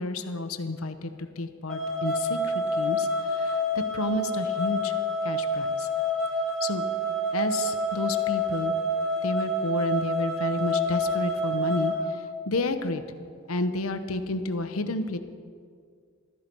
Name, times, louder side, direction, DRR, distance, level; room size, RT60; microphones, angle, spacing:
voice 1, 0.0-4.9 5.2-5.9 6.6-6.8 7.3-8.7 9.2-13.0 13.5-15.2, left 2 dB, 85° left, 9 dB, 0.9 m, -31 dB
sound 1, 1.7-11.9, left 1 dB, 5° left, 1.8 m, -28 dB
15.0 x 13.5 x 4.6 m, 2.1 s
head